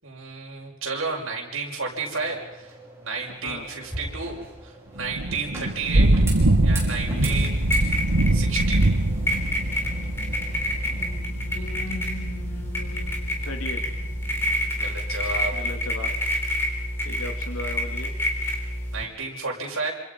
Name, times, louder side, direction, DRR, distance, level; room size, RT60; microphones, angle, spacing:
voice 1, 0.0-2.7 3.0-4.4 4.6-6.1 6.6-7.6 8.3-8.8 14.7-15.5 18.9-19.9, right 4 dB, 65° right, -2 dB, 6.0 m, -32 dB
sound 1, 1.9-11.2, right 1 dB, 10° right, 5.7 m, -41 dB
Thunder / Rain, 5.0-14.5, right 1 dB, 90° right, 1.5 m, -24 dB
sound 2, 7.2-19.0, equal, 10° left, 3.9 m, -28 dB
voice 2, 10.9-13.8 15.5-16.1 17.0-18.1, left 2 dB, 80° left, 3 dB, 3.0 m, -37 dB
27.5 x 26.5 x 5.5 m, 0.94 s
head